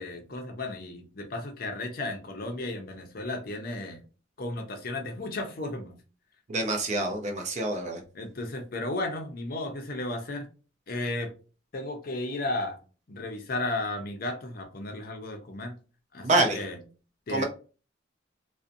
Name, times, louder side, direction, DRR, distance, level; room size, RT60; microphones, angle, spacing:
voice 1, 0.0-4.0 4.4-6.0 8.1-10.4 10.9-11.3 11.7-12.8 13.1-15.7 16.1-16.8 17.3-17.4, left 2 dB, 45° left, 0.5 m, -34 dB
voice 2, 6.5-8.0 16.2-16.6 17.3-17.4, right 2 dB, 35° right, 0.5 m, -26 dB
2.5 x 2.1 x 2.5 m
head